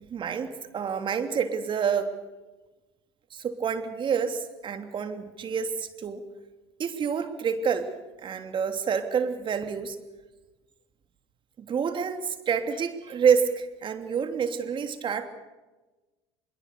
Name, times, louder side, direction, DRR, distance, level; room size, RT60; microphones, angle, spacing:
voice 1, 0.1-2.1 3.3-6.2 6.8-7.9 8.2-10.0 11.6-15.3, right 6 dB, 40° right, 8 dB, 3.1 m, -28 dB
25.5 x 22.5 x 6.8 m, 1.2 s
supercardioid pair, 95°, 13 cm